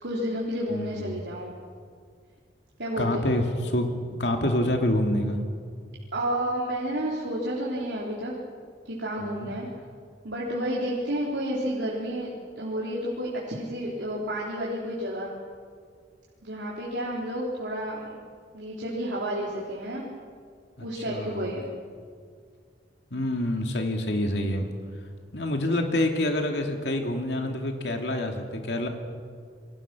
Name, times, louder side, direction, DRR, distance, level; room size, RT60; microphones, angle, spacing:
voice 1, 0.0-1.5 2.8-3.4 6.1-8.3 8.9-9.7 10.2-15.3 16.4-18.2 18.5-20.1 20.8-21.7, equal, 90° right, -5 dB, 3.8 m, -31 dB
voice 2, 0.7-1.2 3.0-3.9 4.2-5.4 9.2-9.5 20.8-21.5 23.1-24.7 25.3-28.9, left 1 dB, 70° left, 3 dB, 2.6 m, -27 dB
28.5 x 23.0 x 6.2 m, 2.1 s
head